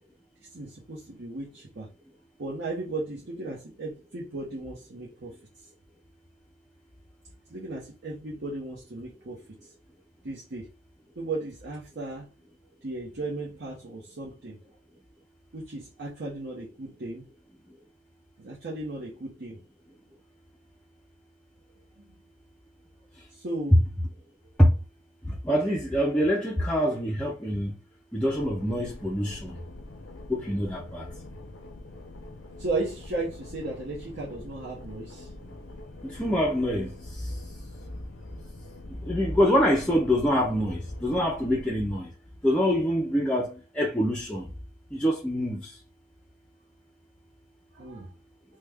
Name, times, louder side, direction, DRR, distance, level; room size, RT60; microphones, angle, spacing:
voice 1, 0.5-1.9 2.4-5.3 7.5-9.4 10.2-10.7 11.2-12.3 12.8-14.6 15.5-17.3 18.4-19.6 22.0-22.1 23.3-23.8 32.6-35.3 37.8-37.9 47.7-48.1, right 2 dB, 60° right, 0.8 m, -35 dB
voice 2, 25.3-27.7 28.1-29.6 30.3-31.1 36.0-37.4 39.0-42.1 42.4-44.5 44.9-45.7, equal, 5° left, 0.4 m, -25 dB
sound 1, 28.2-41.9, left 2 dB, 75° left, 0.6 m, -45 dB
3.2 x 2.1 x 3.4 m
head